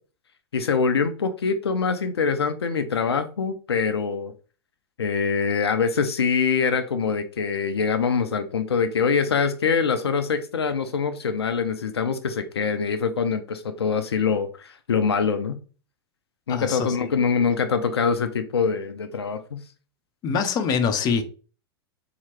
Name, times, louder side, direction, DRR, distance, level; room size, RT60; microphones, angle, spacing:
voice 1, 0.5-4.3 5.0-15.6 16.5-19.6, left 5 dB, 80° left, 0.5 m, -24 dB
voice 2, 16.5-17.1 20.2-21.2, left 6 dB, 30° left, 0.6 m, -24 dB
3.9 x 2.9 x 3.0 m
figure-of-eight pair, 95°, 13 cm